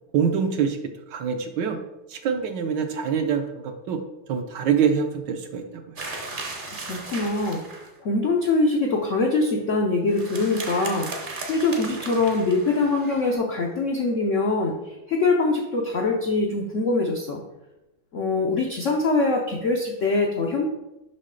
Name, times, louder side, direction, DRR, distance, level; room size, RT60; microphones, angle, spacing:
voice 1, 0.1-0.8 1.1-1.8 2.1-4.0 4.3-5.9, right 7 dB, 70° right, 6 dB, 1.1 m, -25 dB
sound 1, 6.0-8.0 10.1-13.4, right 3 dB, 40° right, 0.7 m, -36 dB
voice 2, 6.8-7.6 8.0-11.1 11.5-14.8 15.1-17.4 18.1-20.6, left 3 dB, 75° left, 0 dB, 0.7 m, -23 dB
6.3 x 5.6 x 3.8 m, 0.98 s
omnidirectional pair, 2.3 m